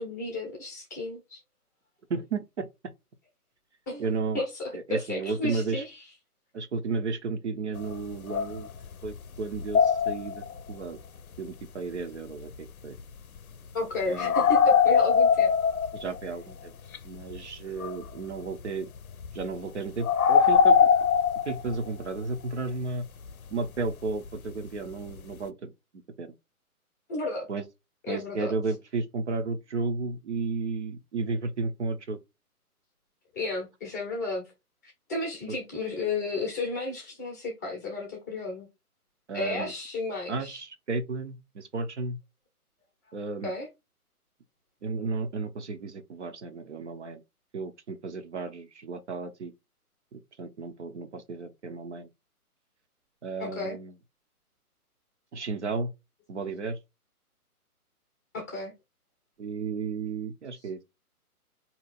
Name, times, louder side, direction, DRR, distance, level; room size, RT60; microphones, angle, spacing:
voice 1, 0.0-1.4 3.9-4.1 4.3-6.0 13.7-15.5 27.1-27.5 28.1-28.5 33.3-34.5 34.8-38.7 39.3-40.6 43.4-43.7 53.4-53.8 58.3-58.7, left 2 dB, 10° left, 0.7 m, -33 dB
voice 2, 2.1-2.7 4.0-4.4 4.7-5.8 6.5-8.7 9.0-11.0 11.4-13.0 14.1-14.6 15.9-16.7 17.0-18.9 19.3-20.9 21.5-23.0 23.5-25.7 26.2-26.3 27.5-27.6 28.1-32.2 39.3-39.7 40.3-42.2 43.1-43.5 44.8-47.2 47.5-49.5 50.1-52.1 53.2-53.9 55.3-55.9 56.3-56.8 59.4-60.8, right 4 dB, 50° right, 0.7 m, -33 dB
sound 1, 7.8-7.9 8.3-9.2 9.5-10.6 14.2-16.2 16.9-17.0 17.3-17.4 17.8-18.1 19.0-19.4 20.0-22.0 24.3-24.4 25.1-25.2, left 6 dB, 65° left, 0.6 m, -22 dB
4.2 x 2.9 x 4.0 m
figure-of-eight pair, 140°, 45 cm